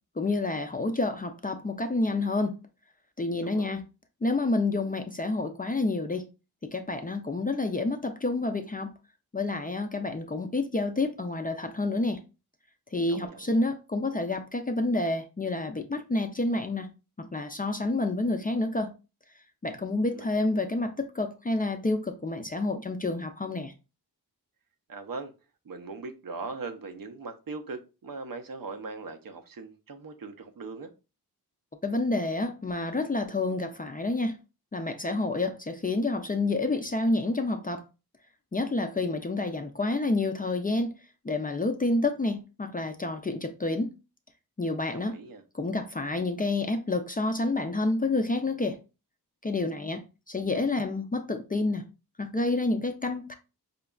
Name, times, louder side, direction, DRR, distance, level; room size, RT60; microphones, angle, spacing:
voice 1, 0.2-2.6 3.2-3.8 4.2-6.3 6.6-8.9 9.3-12.2 12.9-16.9 17.2-18.9 19.6-23.7 31.8-34.4 34.7-37.8 38.5-40.9 41.2-43.9 44.6-45.2 45.5-48.8 49.4-51.9 52.2-53.3, left 2 dB, 25° left, 0.4 m, -29 dB
voice 2, 3.4-3.8 13.1-13.6 20.1-20.5 24.9-25.3 25.6-30.9 44.9-45.4, right 3 dB, 60° right, 0.6 m, -40 dB
5.1 x 2.3 x 2.2 m
wide cardioid pair, 80°, 39 cm